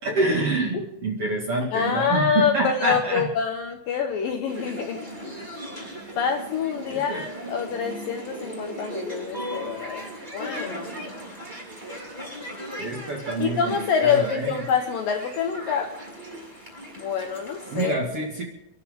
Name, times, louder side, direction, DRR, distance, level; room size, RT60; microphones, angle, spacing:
voice 1, 0.0-3.3 6.9-7.2 12.8-14.6 17.7-18.4, right 2 dB, 45° right, 0 dB, 2.3 m, -27 dB
voice 2, 1.7-5.3 6.2-10.0 10.3-10.9 13.4-15.9 17.0-18.0, left 7 dB, 70° left, 4 dB, 2.2 m, -26 dB
sound 1, 4.5-17.9, equal, 10° right, 5.8 m, -38 dB
29.0 x 11.5 x 3.7 m, 0.89 s
omnidirectional pair, 5.2 m